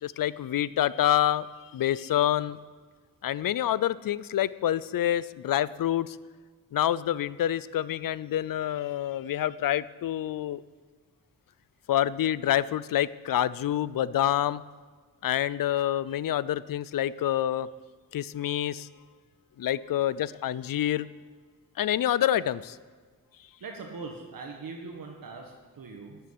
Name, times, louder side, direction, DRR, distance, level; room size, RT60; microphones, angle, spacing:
voice 1, 0.0-2.6 3.2-6.2 6.7-10.6 11.9-14.6 15.2-17.7 18.1-18.9 19.6-21.1 21.8-22.8, left 11 dB, 70° left, 18 dB, 0.5 m, -27 dB
voice 2, 23.6-26.2, right 4 dB, 70° right, 1 dB, 1.6 m, -41 dB
12.5 x 8.1 x 9.7 m, 1.5 s
wide cardioid pair, 140°, 34 cm